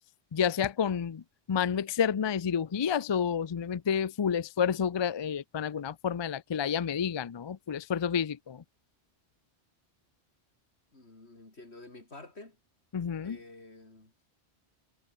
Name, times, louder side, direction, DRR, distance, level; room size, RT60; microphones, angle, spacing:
voice 1, 0.3-1.2 1.5-8.6 12.9-13.4, left 7 dB, 45° left, 0.3 m, -30 dB
voice 2, 10.9-12.6 13.2-14.1, left 2 dB, 70° left, 4.5 m, -50 dB
omnidirectional pair, 1.1 m